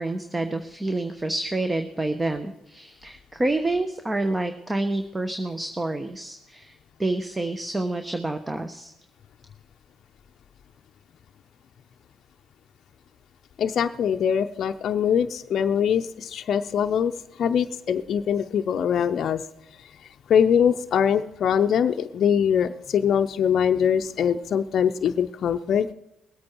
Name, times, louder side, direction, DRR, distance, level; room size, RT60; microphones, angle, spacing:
voice 1, 0.0-6.7 7.0-8.9, right 2 dB, 20° right, 8 dB, 1.1 m, -28 dB
voice 2, 13.6-17.1 17.4-19.4 20.3-25.9, left 8 dB, 65° left, 6 dB, 0.6 m, -23 dB
20.0 x 8.5 x 4.6 m, 0.85 s
supercardioid pair, 60°, 0 cm